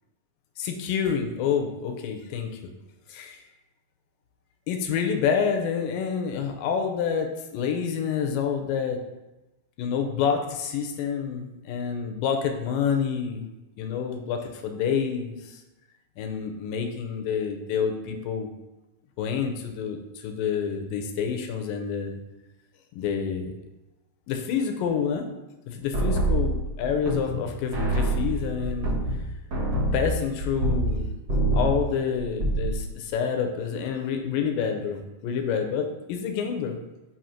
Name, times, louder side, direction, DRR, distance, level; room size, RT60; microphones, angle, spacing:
voice 1, 0.6-2.5 3.1-3.4 4.7-9.0 9.8-13.5 13.8-15.6 16.2-18.5 19.2-22.2 22.9-23.5 24.3-25.3 25.7-29.0 29.9-31.1 31.5-36.8, left 7 dB, 90° left, 4 dB, 2.4 m, -28 dB
sound 1, 25.9-27.4 27.7-31.0 31.3-31.8 32.2-32.8, right 1 dB, 55° right, 1.3 m, -25 dB
7.3 x 2.8 x 5.6 m, 1.0 s
omnidirectional pair, 3.8 m